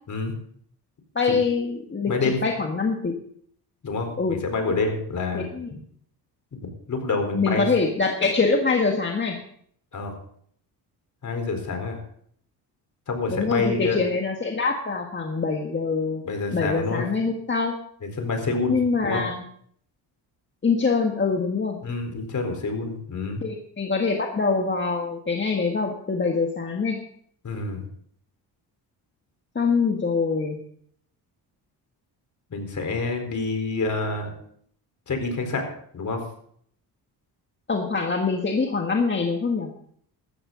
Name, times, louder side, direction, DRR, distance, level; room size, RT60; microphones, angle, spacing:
voice 1, 1.1-3.1 4.2-4.4 5.3-5.7 7.3-9.4 13.3-16.2 16.5-17.7 18.7-19.4 20.6-21.8 23.4-27.0 29.5-30.6 37.7-39.7, left 4 dB, 25° left, 2 dB, 1.7 m, -24 dB
voice 2, 2.1-2.4 3.8-5.5 6.9-7.7 9.9-10.2 11.2-12.0 13.1-14.0 16.2-17.1 18.0-18.8 19.0-19.3 21.8-23.4 27.4-27.8 32.5-34.3 35.1-36.2, left 3 dB, 45° left, 5 dB, 4.1 m, -27 dB
15.5 x 13.5 x 3.9 m, 0.64 s
cardioid pair, 95°, 41 cm